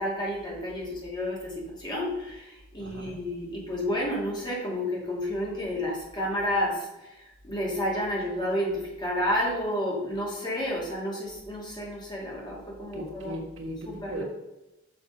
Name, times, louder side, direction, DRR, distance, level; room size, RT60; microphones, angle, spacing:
voice 1, 0.0-13.4 13.9-14.2, left 1 dB, 25° left, 2.4 m, -31 dB
voice 2, 2.8-3.2 12.9-14.2, equal, 85° right, 1.4 m, -38 dB
6.5 x 5.6 x 5.4 m
head